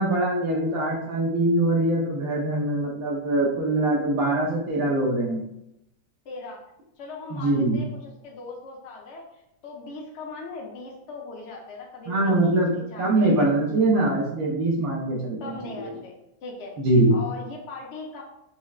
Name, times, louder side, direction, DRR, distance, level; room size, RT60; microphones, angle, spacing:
voice 1, 0.0-5.4 7.3-7.8 12.1-12.7 13.0-15.9 16.8-17.1, right 2 dB, 75° right, -2 dB, 1.1 m, -23 dB
voice 2, 6.2-6.6 7.0-13.3 13.9-14.1 15.4-16.7 17.1-18.2, left 3 dB, 60° left, -1 dB, 0.9 m, -39 dB
5.6 x 2.1 x 2.4 m, 0.84 s
omnidirectional pair, 1.5 m